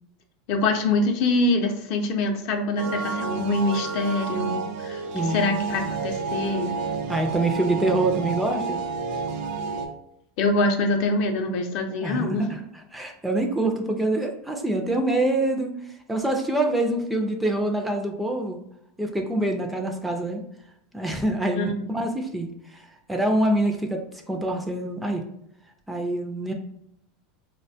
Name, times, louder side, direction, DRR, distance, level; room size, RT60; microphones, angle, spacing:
voice 1, 0.5-5.0 5.3-6.7 10.4-12.5 21.6-21.8, left 2 dB, 55° left, 4 dB, 0.5 m, -24 dB
sound 1, 2.8-9.9, right 4 dB, 65° right, 0.5 m, -30 dB
voice 2, 5.1-5.5 7.1-8.8 12.0-12.6 12.9-15.7 16.1-18.6 19.0-20.4 20.9-22.5 22.7-22.8 23.1-24.0 24.3-25.2 25.9-26.5, right 1 dB, 5° right, 3 dB, 0.3 m, -25 dB
4.0 x 2.1 x 2.6 m, 0.76 s
supercardioid pair, 140°, 0 cm